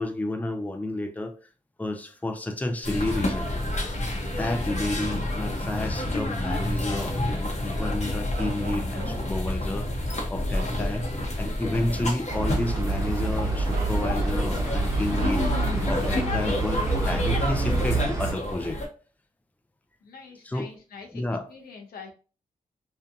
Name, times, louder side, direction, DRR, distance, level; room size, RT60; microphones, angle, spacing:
voice 1, 0.0-1.4 1.8-3.5 4.1-9.9 10.3-11.1 11.4-15.4 15.9-18.8 20.4-20.7 21.1-21.5, left 1 dB, 10° left, 0.5 m, -31 dB
sound 1, 2.8-18.9, left 1 dB, 50° left, 0.8 m, -29 dB
Bark, 8.3-9.4 10.0-11.3 11.7-11.9 13.0-13.1 13.7-14.5 15.2-15.6, right 4 dB, 80° right, 0.4 m, -42 dB
sound 2, 12.3-18.4, right 3 dB, 20° right, 1.0 m, -27 dB
voice 2, 20.0-21.2 21.5-22.1, left 5 dB, 90° left, 0.6 m, -44 dB
2.7 x 2.2 x 2.5 m
cardioid pair, 50°, 15 cm